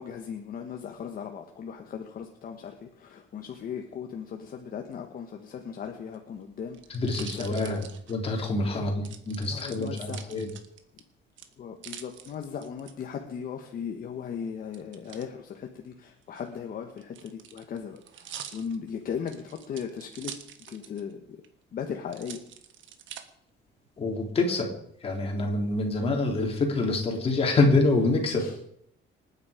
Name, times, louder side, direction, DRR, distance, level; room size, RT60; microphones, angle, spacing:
voice 1, 0.0-6.8 7.3-7.9 8.7-8.9 9.4-10.3 11.6-20.3 20.7-21.4 21.7-22.4 28.4-28.5, left 7 dB, 45° left, 3 dB, 1.5 m, -37 dB
sound 1, 6.0-8.5 9.0-11.0 11.4-12.9 14.7-15.3 16.2-21.1 21.4-21.5 22.1-23.2 23.8-24.4, right 9 dB, 75° right, 1.5 m, -45 dB
voice 2, 6.9-10.5 24.0-24.7 25.0-28.6, left 2 dB, 30° left, 1 dB, 3.4 m, -26 dB
27.0 x 9.8 x 5.1 m, 0.71 s
cardioid pair, 175°, 20 cm